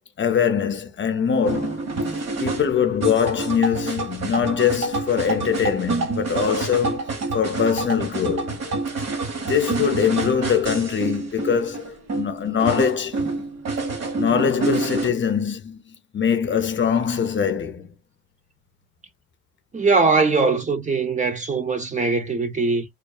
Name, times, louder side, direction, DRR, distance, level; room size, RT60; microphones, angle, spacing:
voice 1, 0.2-2.0 2.4-8.5 9.4-13.2 14.2-17.9, left 7 dB, 40° left, 0.5 m, -23 dB
sound 1, 1.5-15.1, right 3 dB, 55° right, 1.2 m, -27 dB
voice 2, 19.7-22.8, right 4 dB, 25° right, 0.6 m, -21 dB
2.6 x 2.3 x 2.3 m
cardioid pair, 90°, 30 cm